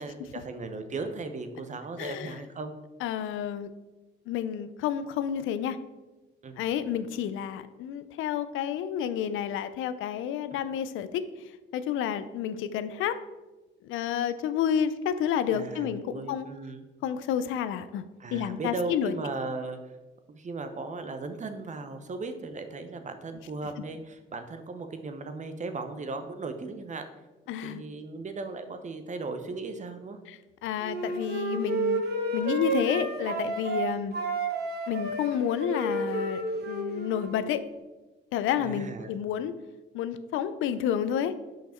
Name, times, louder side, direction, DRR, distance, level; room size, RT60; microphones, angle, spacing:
voice 1, 0.0-2.7 6.4-6.6 15.5-16.8 18.2-19.8 20.3-27.1 27.6-30.2 38.6-39.1, right 3 dB, 35° right, 8 dB, 0.8 m, -37 dB
voice 2, 2.0-2.4 3.0-3.7 4.3-5.8 6.6-11.2 11.7-13.2 13.8-16.5 17.0-18.0 18.3-19.1 27.5-27.8 30.3-32.0 32.3-34.1 34.9-37.6 38.3-39.5 39.9-41.3, left 9 dB, 85° left, 12 dB, 0.5 m, -30 dB
Wind instrument woodwind instrument, 30.8-33.8 34.1-37.4, right 2 dB, 55° right, 1.4 m, -31 dB
5.8 x 5.2 x 4.3 m, 1.1 s
cardioid pair, 90°, 20 cm